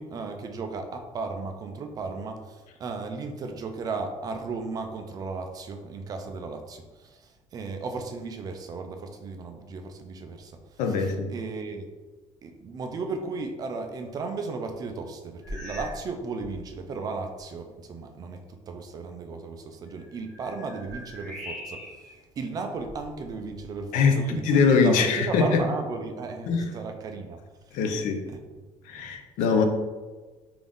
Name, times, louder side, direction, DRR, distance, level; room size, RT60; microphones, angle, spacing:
voice 1, 0.0-10.6 10.9-11.9 12.4-24.5 24.8-27.4 28.3-28.4 28.9-29.0 29.5-29.6, right 4 dB, 30° right, 5 dB, 0.3 m, -35 dB
voice 2, 10.8-11.3 23.9-25.6 26.5-26.7 27.7-28.2 28.9-29.6, left 5 dB, 80° left, 4 dB, 0.5 m, -22 dB
sound 1, 15.4-16.1 16.4-16.7 17.4-17.5 19.9-22.2 22.7-23.8, left 1 dB, 5° left, 0.9 m, -41 dB
3.7 x 2.5 x 3.5 m, 1.3 s
cardioid pair, 170°, 13 cm